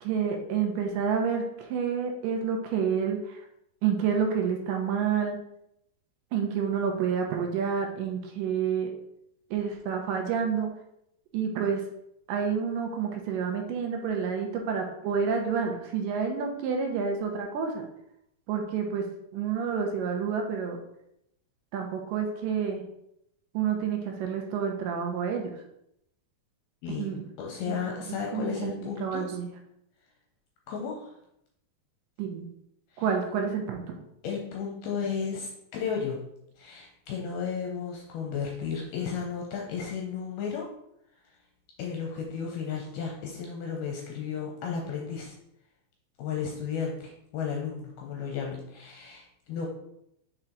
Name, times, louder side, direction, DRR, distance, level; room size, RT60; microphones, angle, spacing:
voice 1, 0.0-3.5 3.8-5.4 6.3-8.9 9.5-10.7 11.3-11.8 12.3-17.9 18.5-19.1 19.3-20.8 21.7-22.8 23.5-25.6 26.9-27.3 27.7-27.8 28.1-29.5 32.2-32.5 33.0-34.0, right 6 dB, 80° right, 2 dB, 2.0 m, -29 dB
voice 2, 27.4-29.3 30.7-31.1 32.9-33.0 34.2-36.2 36.6-40.7 41.8-45.4 46.2-49.7, left 6 dB, 75° left, -1 dB, 2.6 m, -34 dB
6.1 x 4.4 x 3.8 m, 0.78 s
omnidirectional pair, 4.7 m